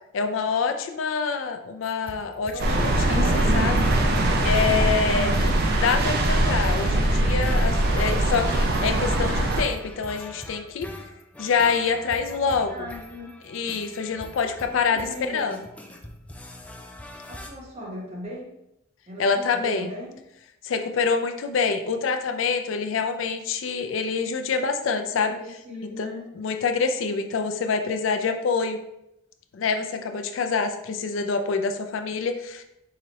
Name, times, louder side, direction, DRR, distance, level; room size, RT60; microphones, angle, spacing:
voice 1, 0.1-3.8 4.4-10.9 11.4-12.7 13.5-15.6 19.2-19.9 20.6-25.4 26.0-26.1 26.4-28.8 29.5-32.6, left 5 dB, 85° left, 7 dB, 0.4 m, -26 dB
sound 1, 1.8-17.5, left 1 dB, 5° left, 0.3 m, -42 dB
voice 2, 2.5-3.5 12.3-13.4 14.7-15.5 17.3-18.5 19.1-20.2 25.0-26.3, equal, 35° right, -3 dB, 1.1 m, -38 dB
sound 2, 2.6-9.6, right 1 dB, 55° right, 0.5 m, -22 dB
4.8 x 2.8 x 3.0 m, 0.84 s
head